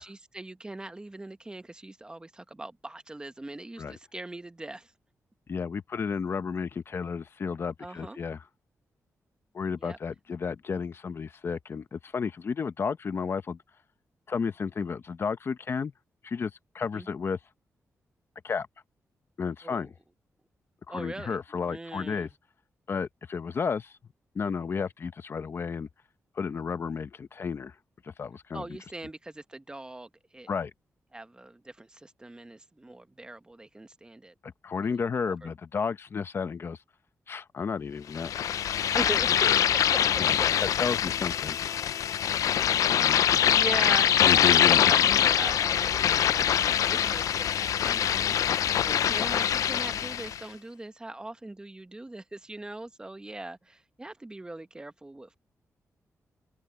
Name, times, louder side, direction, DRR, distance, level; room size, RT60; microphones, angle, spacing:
voice 1, 0.0-4.9 7.8-8.2 9.8-10.0 16.9-17.1 19.6-19.9 20.9-21.4 21.7-22.3 28.5-30.5 31.1-34.3 35.4-35.5 38.9-39.3 42.9-48.4 48.8-55.3, right 2 dB, 15° right, 1.0 m, -41 dB
voice 2, 5.5-8.4 9.5-13.6 14.3-15.9 16.2-17.4 18.4-18.7 19.4-19.9 20.9-22.3 22.9-23.9 24.3-25.9 26.3-27.7 28.0-28.6 30.5-30.7 34.4-36.8 37.3-38.5 40.2-40.3 40.6-41.6, left 5 dB, 45° left, 0.9 m, -32 dB
sound 1, 38.2-50.4, left 9 dB, 85° left, 0.4 m, -24 dB
wide cardioid pair, 125°, 6 cm